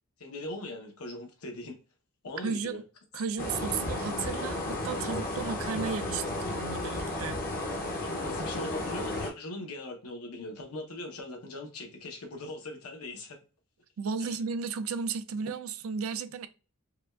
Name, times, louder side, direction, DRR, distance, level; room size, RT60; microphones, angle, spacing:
voice 1, 0.2-1.8 2.2-2.8 8.0-13.4 14.3-14.4, left 2 dB, 80° left, 0.9 m, -40 dB
voice 2, 2.4-2.8 3.1-7.4 14.0-16.5, right 5 dB, 70° right, 0.4 m, -34 dB
sound 1, 3.4-9.3, left 2 dB, 40° left, 0.7 m, -33 dB
4.7 x 2.3 x 2.3 m
head